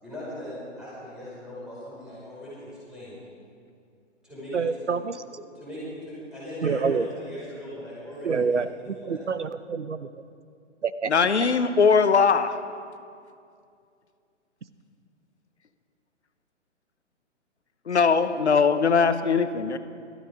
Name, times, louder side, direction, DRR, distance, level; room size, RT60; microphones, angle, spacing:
voice 1, 0.0-3.2 4.2-4.9 5.6-8.4 9.0-9.2, left 1 dB, ahead, -10 dB, 5.5 m, -39 dB
voice 2, 4.5-5.2 6.6-7.1 8.2-10.1 10.8-11.1, right 5 dB, 65° right, 13 dB, 0.9 m, -27 dB
voice 3, 11.1-12.6 17.9-19.8, left 5 dB, 65° left, 11 dB, 1.0 m, -20 dB
19.5 x 13.5 x 5.2 m, 2.3 s
figure-of-eight pair, 130°, 37 cm